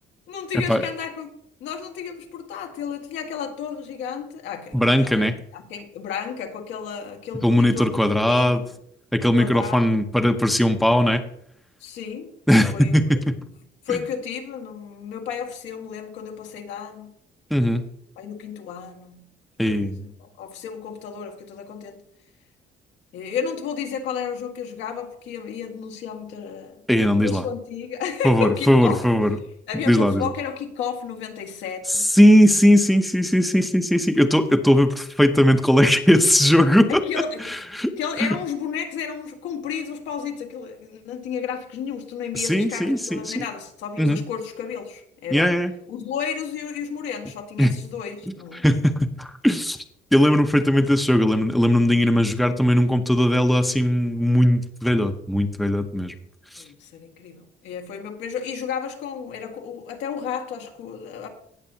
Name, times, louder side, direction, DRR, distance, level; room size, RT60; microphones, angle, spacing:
voice 1, 0.3-1.3 1.6-7.9 8.2-8.7 9.3-10.0 11.8-12.4 12.7-13.2 13.9-17.1 18.2-19.3 19.6-22.0 23.1-26.8 27.2-29.0 29.7-32.1 36.9-37.5 38.0-45.6 45.9-48.7 56.6-61.3, left 7 dB, 90° left, 3 dB, 1.8 m, -32 dB
voice 2, 4.7-5.4 7.4-8.6 9.1-11.2 12.5-13.2 13.9-14.0 17.5-17.9 19.6-20.0 26.9-27.4 28.2-29.4 29.9-30.3 31.9-37.0 37.4-37.9 38.2-38.4 42.3-43.4 44.0-44.2 45.3-45.7 47.6-47.7 48.3-49.8 50.1-56.1 56.5-56.6, equal, ahead, 6 dB, 0.7 m, -19 dB
18.0 x 6.8 x 2.8 m, 0.71 s
cardioid pair, 120°, 18 cm